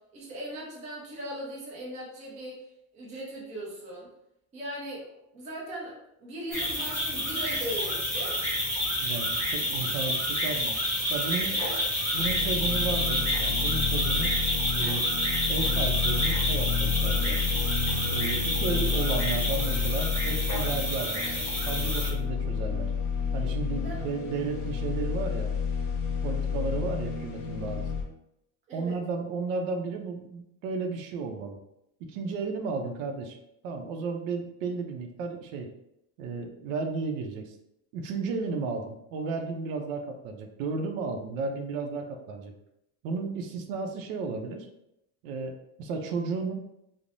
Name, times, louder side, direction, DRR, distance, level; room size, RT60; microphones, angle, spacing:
voice 1, 0.1-2.6 2.9-4.1 4.5-5.0 5.3-5.9 6.2-8.4 11.6-11.8 23.8-24.1 24.6-24.8 28.7-29.0, right 1 dB, 20° right, -5 dB, 0.5 m, -38 dB
sound 1, 6.5-22.1, equal, 5° left, 0.9 m, -29 dB
voice 2, 9.0-10.7 11.1-11.7 12.1-14.3 14.7-15.2 15.5-17.4 18.1-22.9 23.3-25.5 26.2-27.9 28.7-31.6 32.1-33.4 33.6-35.7 36.2-37.5 37.9-42.5 43.0-44.7 45.2-45.5 45.8-46.5, right 4 dB, 75° right, 4 dB, 0.6 m, -33 dB
sound 2, 12.2-28.0, left 6 dB, 65° left, 0.7 m, -30 dB
3.2 x 2.0 x 2.5 m, 0.82 s
cardioid pair, 175°, 41 cm